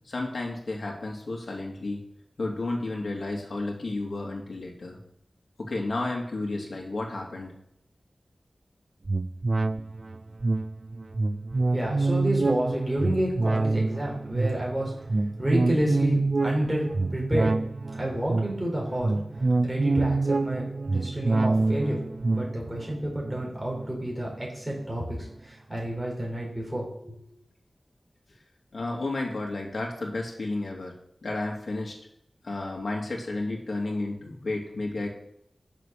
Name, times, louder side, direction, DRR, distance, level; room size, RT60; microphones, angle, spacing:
voice 1, 0.1-2.0 2.4-4.9 5.7-7.5 28.7-30.9 31.2-31.9 32.5-35.1, left 2 dB, 75° left, 0 dB, 2.4 m, -32 dB
sound 1, 9.1-24.8 25.2-25.3, right 3 dB, 55° right, 0.4 m, -27 dB
voice 2, 11.7-14.9 15.4-16.8 17.1-17.6 18.0-19.2 19.6-22.0 22.3-25.2 25.5-27.2, right 1 dB, 10° right, -3 dB, 4.8 m, -29 dB
8.1 x 6.8 x 6.7 m, 0.75 s
wide cardioid pair, 60°, 0 cm